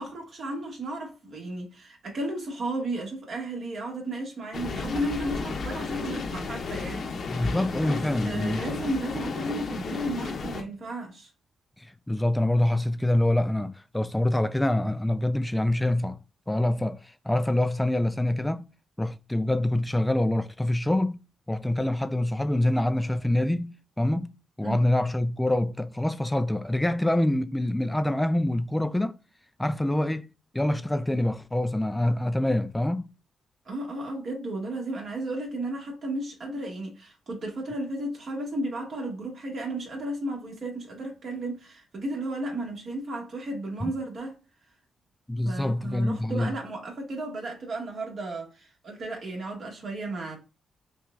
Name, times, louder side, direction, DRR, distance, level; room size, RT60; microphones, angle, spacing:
voice 1, 0.0-7.5 7.8-11.3 24.6-24.8 33.6-44.4 45.4-50.4, right 1 dB, 60° right, 1.6 m, -34 dB
sound 1, 4.5-10.6, left 4 dB, 60° left, 0.8 m, -33 dB
voice 2, 7.3-8.6 11.8-16.2 16.5-18.7 19.0-21.2 21.5-29.2 29.6-30.3 30.5-33.1 43.8-43.9 45.3-46.5, left 1 dB, 10° left, 0.3 m, -26 dB
5.8 x 2.4 x 2.4 m
cardioid pair, 70°, 0 cm